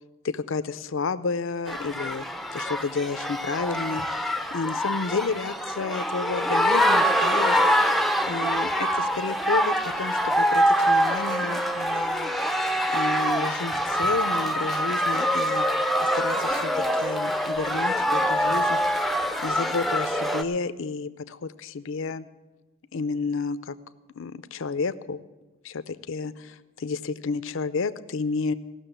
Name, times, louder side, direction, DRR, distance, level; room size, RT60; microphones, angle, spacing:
voice 1, 0.2-2.2 2.5-7.6 8.3-12.3 12.9-15.7 16.0-18.8 19.4-22.3 22.9-23.7 24.1-25.2 25.6-28.5, left 4 dB, 65° left, 13 dB, 0.6 m, -31 dB
sound 1, 1.7-20.4, equal, ahead, 0.5 m, -24 dB
16.0 x 6.5 x 9.0 m, 1.1 s
head